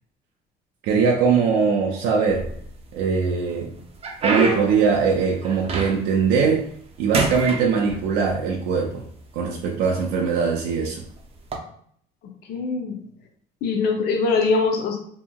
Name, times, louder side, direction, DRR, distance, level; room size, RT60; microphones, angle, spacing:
voice 1, 0.8-2.4 2.9-3.7 4.2-6.6 7.0-9.0 9.3-11.0, right 5 dB, 90° right, 0 dB, 0.4 m, -21 dB
sound 1, 2.3-3.0 3.5-6.2 6.6-6.9 7.1-8.4 9.2-9.3 10.0-10.2 11.4-11.6, right 4 dB, 35° right, 0.5 m, -27 dB
voice 2, 12.5-13.0 13.6-15.0, left 4 dB, 70° left, 3 dB, 0.5 m, -22 dB
2.8 x 2.7 x 2.2 m, 0.63 s
cardioid pair, 110°, 17 cm